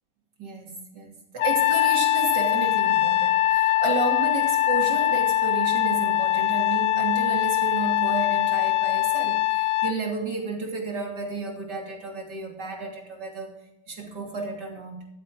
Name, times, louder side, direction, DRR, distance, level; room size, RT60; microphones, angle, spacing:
voice 1, 0.4-13.5 13.9-15.1, right 3 dB, 50° right, 0 dB, 3.5 m, -32 dB
Trumpet, 1.4-10.0, left 14 dB, 85° left, 0.9 m, -22 dB
14.0 x 14.0 x 3.8 m, 0.89 s
omnidirectional pair, 2.4 m